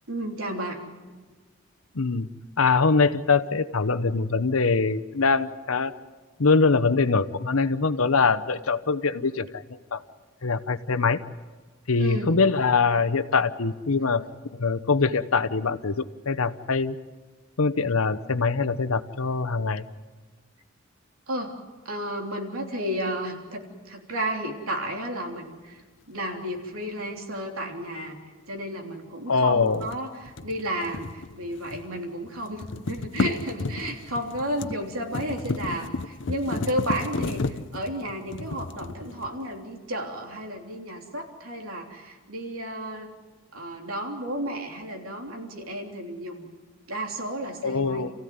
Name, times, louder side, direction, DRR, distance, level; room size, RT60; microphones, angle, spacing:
voice 1, 0.1-0.8 12.0-12.3 21.3-21.5 21.8-25.8 26.1-28.2 28.5-43.1 43.5-46.5 46.9-48.1, right 1 dB, 85° right, 2 dB, 3.3 m, -32 dB
voice 2, 1.9-2.3 2.6-5.9 6.4-9.5 9.9-10.0 10.4-11.2 11.9-14.2 14.6-17.0 17.6-19.8 29.3-29.8 47.6-48.1, left 4 dB, 85° left, 13 dB, 0.9 m, -23 dB
sound 1, 29.7-32.0 32.3-39.6, left 3 dB, 60° left, 0.7 m, -33 dB
28.5 x 15.5 x 9.5 m, 1.4 s
head